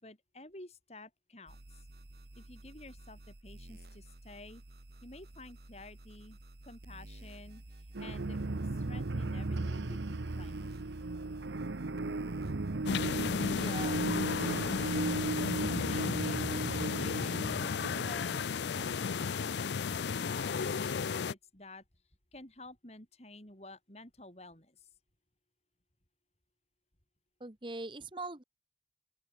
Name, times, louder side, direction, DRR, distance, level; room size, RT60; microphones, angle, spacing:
voice 1, 0.0-1.8 2.3-4.6 5.0-7.6 8.0-8.4 8.7-10.6 15.8-16.4 16.7-18.4 19.9-21.8 22.3-24.9, left 2 dB, 35° left, 5.1 m, -51 dB
sound 1, 1.5-15.3, right 1 dB, 60° right, 1.7 m, -52 dB
sound 2, 7.9-20.5, right 2 dB, 90° right, 0.9 m, -36 dB
sound 3, 12.9-21.3, left 6 dB, 75° left, 0.5 m, -33 dB
voice 2, 13.6-14.1 27.4-28.4, right 2 dB, 30° right, 1.2 m, -41 dB
open air
head